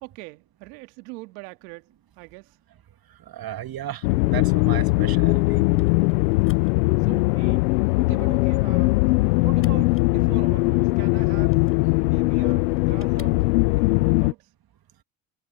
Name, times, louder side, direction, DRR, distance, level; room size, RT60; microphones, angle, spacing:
voice 1, 0.0-1.9 2.2-2.6 7.0-7.7 8.0-9.0 9.4-11.6 12.0-14.5, right 25 dB, 80° right, 2.1 m, -42 dB
voice 2, 3.3-5.6, right 11 dB, 50° right, 2.3 m, -34 dB
sound 1, 3.6-13.8, left 4 dB, 25° left, 7.3 m, -56 dB
sound 2, 4.0-14.3, left 23 dB, 90° left, 0.6 m, -20 dB
hypercardioid pair, 65°, 46 cm